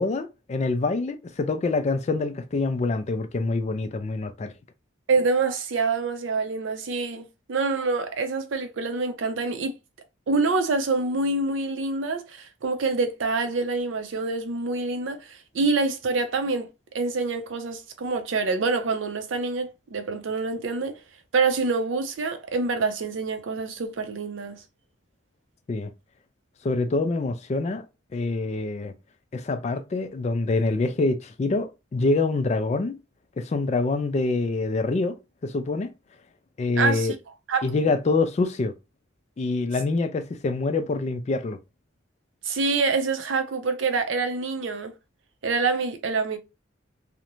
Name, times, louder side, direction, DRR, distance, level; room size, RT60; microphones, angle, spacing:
voice 1, 0.0-4.5 25.7-25.9 26.6-27.9 28.1-28.9 29.3-33.0 33.4-35.2 35.4-35.9 36.6-37.2 37.6-38.7 39.4-41.6, left 3 dB, 35° left, 0.3 m, -25 dB
voice 2, 5.1-9.7 10.3-21.0 21.3-24.6 36.8-37.1 37.5-37.8 42.4-44.9 45.4-46.4, right 4 dB, 80° right, 0.5 m, -26 dB
2.5 x 2.0 x 2.9 m
head